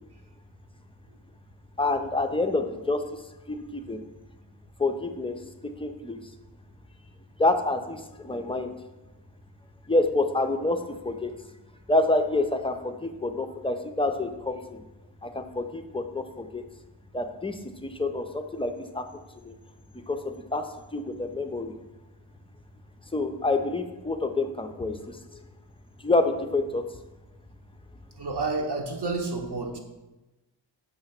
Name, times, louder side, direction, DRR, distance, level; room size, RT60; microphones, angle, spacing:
voice 1, 1.8-3.0 3.5-4.0 4.8-5.5 5.8-6.2 7.4-8.7 9.9-11.3 11.9-14.8 15.2-16.6 17.1-19.0 19.4-19.5 20.1-20.6 20.9-21.7 23.1-25.2 26.0-26.9, left 2 dB, 15° left, 6 dB, 0.3 m, -27 dB
voice 2, 28.2-29.8, right 3 dB, 60° right, 2 dB, 1.0 m, -30 dB
6.5 x 2.9 x 5.7 m, 1.0 s
cardioid pair, 105°, 46 cm